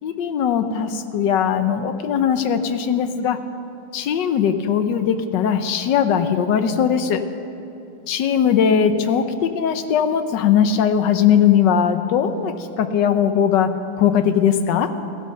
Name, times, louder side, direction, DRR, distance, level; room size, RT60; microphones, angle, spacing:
voice 1, 0.0-3.4 3.9-7.2 8.1-13.7 14.0-14.9, left 8 dB, 70° left, 9 dB, 1.4 m, -19 dB
16.0 x 11.0 x 6.7 m, 3.0 s
omnidirectional pair, 2.1 m